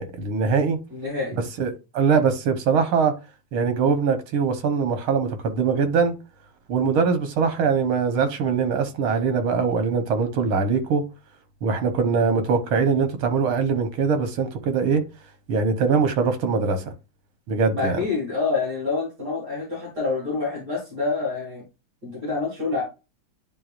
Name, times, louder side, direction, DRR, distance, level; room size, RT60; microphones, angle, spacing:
voice 1, 0.0-0.8 1.6-3.1 3.5-6.2 6.7-11.0 11.6-15.0 15.5-16.9 17.5-18.0, right 5 dB, 90° right, 2.0 m, -22 dB
voice 2, 0.9-1.4 17.7-21.6 22.0-22.8, left 4 dB, 50° right, 4.0 m, -27 dB
11.0 x 3.8 x 2.5 m
omnidirectional pair, 2.2 m